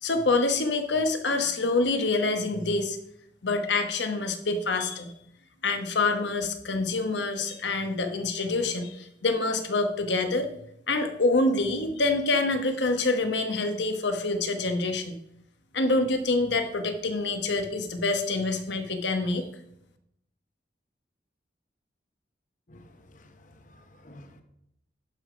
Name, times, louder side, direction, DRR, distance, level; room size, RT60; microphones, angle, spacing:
voice 1, 0.0-3.0 3.4-5.1 5.6-10.5 10.9-15.1 15.7-19.5, left 3 dB, 80° left, 1.1 m, -26 dB
voice 2, 22.7-24.4, left 1 dB, 45° left, 1.0 m, -52 dB
11.0 x 5.1 x 5.1 m
head